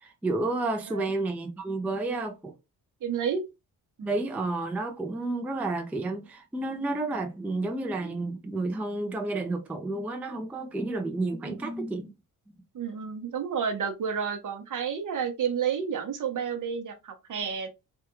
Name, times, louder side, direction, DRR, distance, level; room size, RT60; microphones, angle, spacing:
voice 1, 0.0-2.5 4.0-12.1 12.5-12.6, right 2 dB, 5° right, 0.3 m, -31 dB
voice 2, 3.0-3.4 4.0-4.2 11.5-11.7 12.7-17.7, right 7 dB, 55° right, 0.8 m, -31 dB
3.4 x 2.2 x 3.0 m
wide cardioid pair, 135°, 37 cm